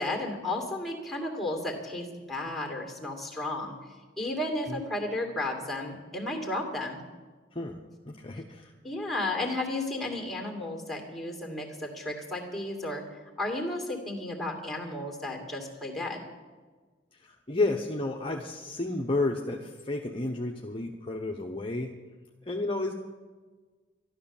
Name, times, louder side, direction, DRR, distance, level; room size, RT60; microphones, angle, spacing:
voice 1, 0.0-3.7 4.2-7.0 8.8-13.0 13.4-16.3, left 2 dB, ahead, 2 dB, 2.5 m, -33 dB
voice 2, 8.0-8.7 17.1-21.9 22.5-22.9, left 2 dB, 30° left, 1 dB, 0.9 m, -31 dB
12.5 x 12.0 x 7.2 m, 1.4 s
head